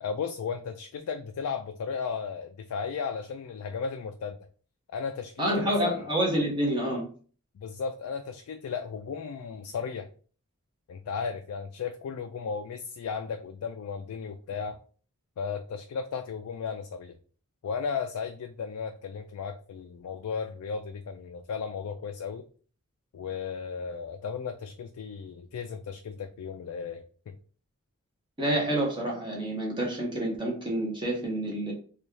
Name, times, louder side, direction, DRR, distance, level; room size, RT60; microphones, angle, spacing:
voice 1, 0.0-4.4 4.9-6.1 7.5-10.1 10.9-14.8 15.4-17.2 17.6-22.5 23.1-27.4, left 6 dB, 90° left, 6 dB, 0.3 m, -35 dB
voice 2, 5.4-7.0 28.4-31.7, right 1 dB, 20° right, -2 dB, 0.9 m, -28 dB
3.9 x 2.3 x 3.1 m, 0.41 s
head